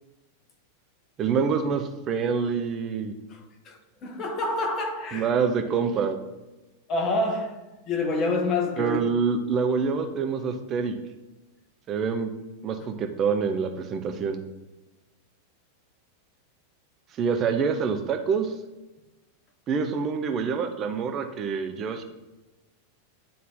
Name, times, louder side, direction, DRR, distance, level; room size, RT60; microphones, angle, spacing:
voice 1, 1.2-3.1 5.1-6.2 8.8-10.9 11.9-12.3 12.6-14.4 17.2-18.5 19.7-22.0, right 5 dB, 30° right, 0.9 m, -26 dB
voice 2, 3.6-5.3 6.9-7.6 7.9-9.0, left 2 dB, 30° left, 1.3 m, -27 dB
10.5 x 3.8 x 3.9 m
figure-of-eight pair, 90°, 0 cm